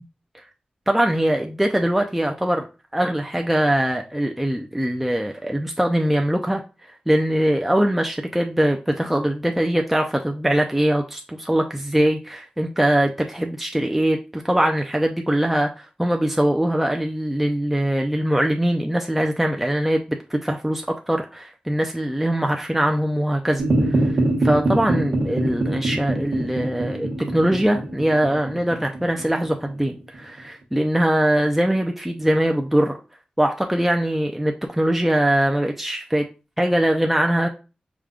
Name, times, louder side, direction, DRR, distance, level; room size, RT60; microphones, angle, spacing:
voice 1, 0.9-2.7 2.9-33.0 33.4-36.3 36.6-37.5, right 1 dB, 5° right, 3 dB, 0.4 m, -22 dB
sound 1, 23.6-30.2, right 2 dB, 85° right, 1.0 m, -24 dB
4.9 x 2.2 x 3.6 m, 0.32 s
wide cardioid pair, 70°, 3 cm